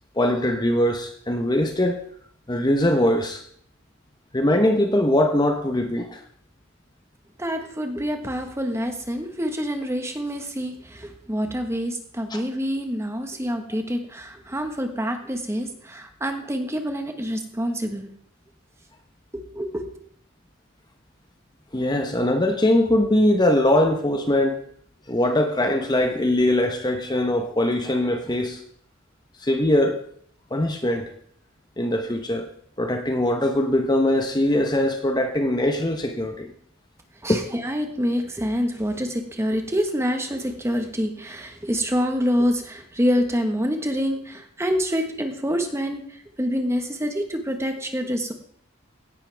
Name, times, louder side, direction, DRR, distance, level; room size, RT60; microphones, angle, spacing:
voice 1, 0.2-2.0 2.5-3.4 4.3-6.2 12.3-12.4 21.7-24.6 25.1-28.6 29.4-30.0 30.5-31.1 31.8-32.5 32.8-36.5 37.3-37.4, left 1 dB, 20° left, 5 dB, 1.0 m, -21 dB
voice 2, 7.4-18.1 19.3-19.9 37.2-48.3, equal, 15° right, 5 dB, 1.4 m, -26 dB
17.0 x 11.5 x 3.5 m, 0.63 s
head